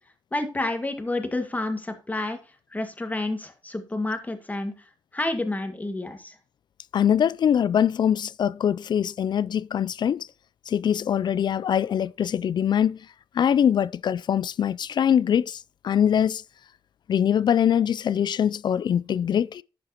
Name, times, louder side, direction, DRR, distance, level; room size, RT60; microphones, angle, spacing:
voice 1, 0.3-2.4 2.7-6.4, left 2 dB, 20° left, 1.8 m, -29 dB
voice 2, 6.9-10.3 10.7-13.0 13.3-16.4 17.1-19.6, left 9 dB, 65° left, 0.3 m, -23 dB
11.0 x 7.6 x 2.9 m
cardioid pair, 90°, 8 cm